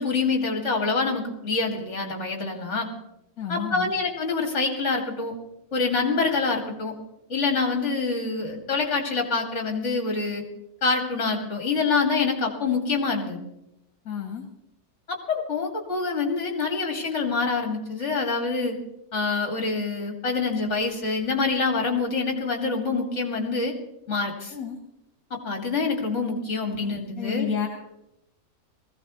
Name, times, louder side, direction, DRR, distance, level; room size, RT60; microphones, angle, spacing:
voice 1, 0.0-2.9 3.5-5.3 5.7-6.9 7.3-10.4 10.8-13.4 15.1-18.8 19.1-23.7 24.1-24.5 25.3-27.5, left 4 dB, 50° left, 2 dB, 2.6 m, -26 dB
voice 2, 3.4-3.9 14.1-14.4 24.5-24.8 26.8-27.7, left 7 dB, 75° left, 3 dB, 1.8 m, -31 dB
20.0 x 15.5 x 3.1 m, 0.86 s
omnidirectional pair, 1.5 m